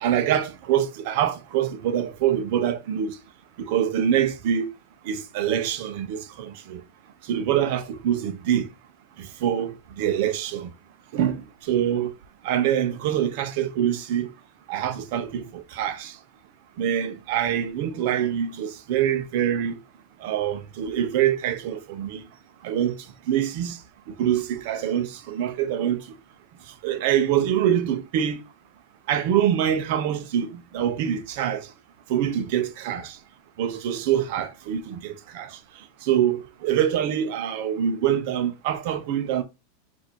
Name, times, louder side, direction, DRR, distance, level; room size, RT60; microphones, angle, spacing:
voice 1, 0.0-3.2 3.6-4.7 5.0-6.8 7.2-8.7 9.2-10.7 11.1-12.1 12.4-14.3 14.7-16.2 16.8-19.8 20.2-22.3 22.6-23.0 23.3-23.8 24.1-26.1 26.8-28.4 29.1-31.7 32.1-33.2 33.6-35.6 36.0-39.4, right 10 dB, 60° right, 0.7 m, -25 dB
4.1 x 2.7 x 4.5 m
hypercardioid pair, 110°, 0 cm